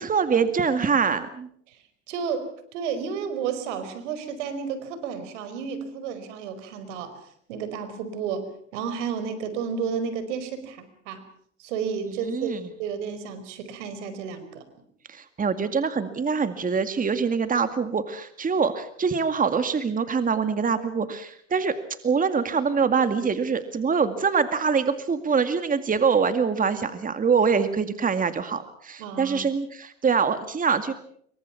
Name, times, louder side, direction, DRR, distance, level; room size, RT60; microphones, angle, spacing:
voice 1, 0.0-1.5 12.1-12.6 15.1-21.8 22.0-30.9, right 5 dB, 20° right, 10 dB, 2.1 m, -24 dB
voice 2, 1.7-11.2 11.6-14.6 29.0-29.5, right 6 dB, 75° right, 12 dB, 5.0 m, -32 dB
26.5 x 24.0 x 5.9 m, 0.64 s
hypercardioid pair, 90°, 36 cm